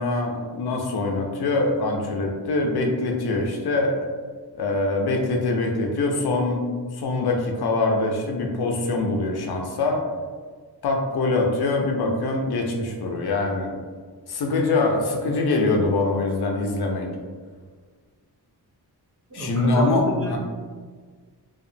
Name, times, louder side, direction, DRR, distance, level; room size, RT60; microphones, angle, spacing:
voice 1, 0.0-4.0 4.5-6.6 6.9-10.0 10.8-13.7 14.3-17.1 19.3-20.4, left 2 dB, 70° left, 1 dB, 0.5 m, -24 dB
voice 2, 19.3-20.4, right 1 dB, 35° right, -4 dB, 0.7 m, -28 dB
2.8 x 2.3 x 2.6 m, 1.5 s
wide cardioid pair, 105°, 40 cm